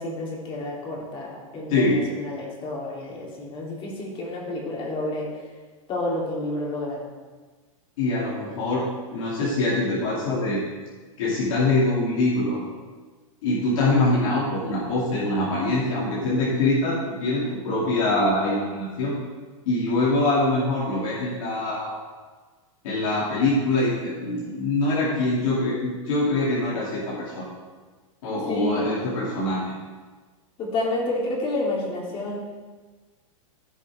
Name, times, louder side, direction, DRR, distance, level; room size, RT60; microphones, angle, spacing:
voice 1, 0.0-5.3 5.9-7.0 28.5-28.9 30.6-32.4, left 2 dB, 30° left, -3 dB, 3.3 m, -30 dB
voice 2, 8.0-10.6 11.2-12.6 13.4-19.1 19.7-21.9 22.8-27.5 28.2-29.7, left 2 dB, 70° left, -7 dB, 2.7 m, -24 dB
15.5 x 5.5 x 3.6 m, 1.4 s
hypercardioid pair, 125°, 18 cm